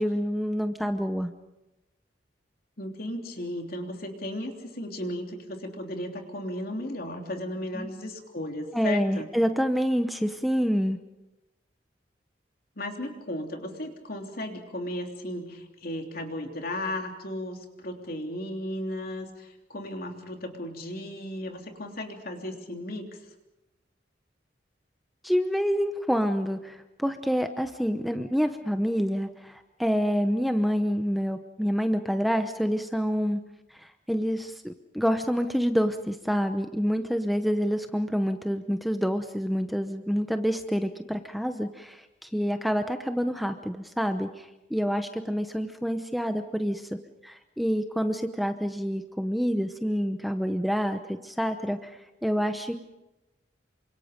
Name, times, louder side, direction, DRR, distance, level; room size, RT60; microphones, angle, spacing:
voice 1, 0.0-1.3 7.7-7.9 8.7-11.0 25.2-33.4 33.7-52.8, equal, ahead, 7 dB, 0.8 m, -27 dB
voice 2, 2.8-9.3 12.7-23.1, left 1 dB, 55° left, 3 dB, 3.3 m, -35 dB
28.0 x 25.5 x 5.2 m, 0.98 s
head